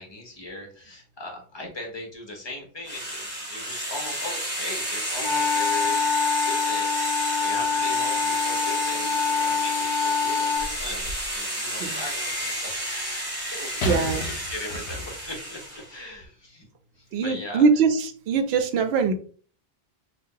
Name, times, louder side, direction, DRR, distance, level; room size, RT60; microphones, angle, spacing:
voice 1, 0.0-6.1 6.4-16.7 17.0-17.6, left 2 dB, 25° left, 0 dB, 0.9 m, -39 dB
sound 1, 2.8-15.9, right 1 dB, 30° right, 1.4 m, -31 dB
sound 2, 5.2-10.7, left 6 dB, 40° left, 0.4 m, -25 dB
sound 3, 10.6-11.4 13.8-15.3 16.1-16.3, equal, 65° left, 0.9 m, -33 dB
voice 2, 13.8-14.2 17.1-18.0 18.3-19.1, right 5 dB, 70° right, 8 dB, 0.8 m, -21 dB
2.6 x 2.3 x 3.7 m, 0.42 s
omnidirectional pair, 1.1 m